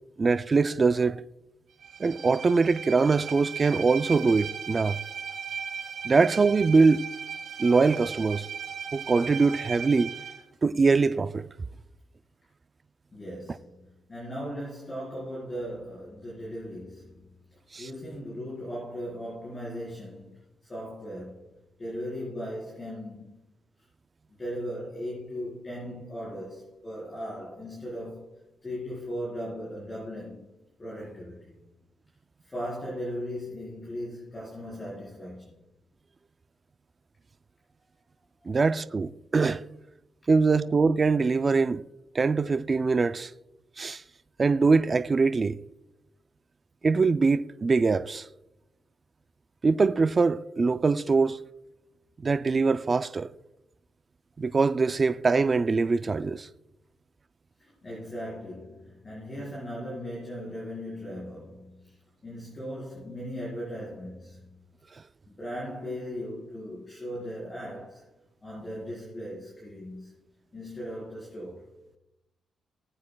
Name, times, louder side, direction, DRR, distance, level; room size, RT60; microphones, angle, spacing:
voice 1, 0.2-1.2 2.0-5.0 6.0-7.1 7.6-8.5 8.9-10.1 10.6-11.5 17.7-17.9 38.5-39.6 40.3-41.8 42.1-43.3 43.8-44.0 44.4-45.6 46.8-48.3 49.6-51.4 52.2-53.3 54.4-56.5, right 4 dB, 30° right, 0.3 m, -23 dB
Bowed string instrument, 1.8-10.4, right 7 dB, 70° right, 1.4 m, -37 dB
voice 2, 13.1-21.5 21.8-23.3 23.8-23.9 24.4-28.4 28.6-30.5 30.8-31.6 32.4-35.6 57.6-64.6 65.3-68.1 68.4-71.7, equal, 25° left, 4.3 m, -38 dB
19.5 x 8.5 x 2.2 m
wide cardioid pair, 150°, 0 cm